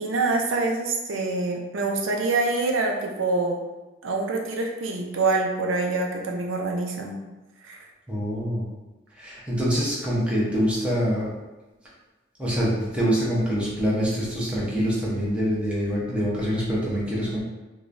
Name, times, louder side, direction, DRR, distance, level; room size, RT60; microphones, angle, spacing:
voice 1, 0.0-3.6 4.0-7.2 7.6-7.8, right 3 dB, 85° right, 1 dB, 0.5 m, -25 dB
voice 2, 8.1-8.6 9.1-11.3 12.4-17.4, equal, 5° right, -7 dB, 0.8 m, -25 dB
4.8 x 2.3 x 2.6 m, 1.1 s
head